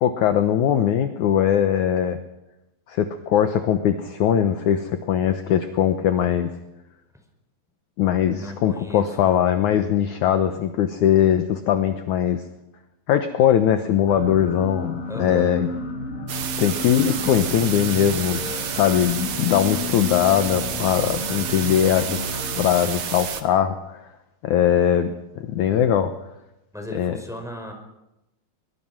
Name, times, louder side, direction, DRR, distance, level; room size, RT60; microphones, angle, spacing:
voice 1, 0.0-2.2 2.9-6.6 8.0-12.4 13.1-15.7 16.6-22.2 22.6-23.8 24.4-26.1 26.9-27.2, left 10 dB, 70° left, 8 dB, 2.1 m, -21 dB
voice 2, 8.3-9.4 15.1-15.5 26.7-27.7, equal, ahead, 3 dB, 4.6 m, -36 dB
sound 1, 14.1-22.7, left 3 dB, 40° left, 4.8 m, -32 dB
sound 2, 16.3-23.4, right 8 dB, 55° right, 2.3 m, -30 dB
23.0 x 23.0 x 6.1 m, 0.91 s
omnidirectional pair, 4.4 m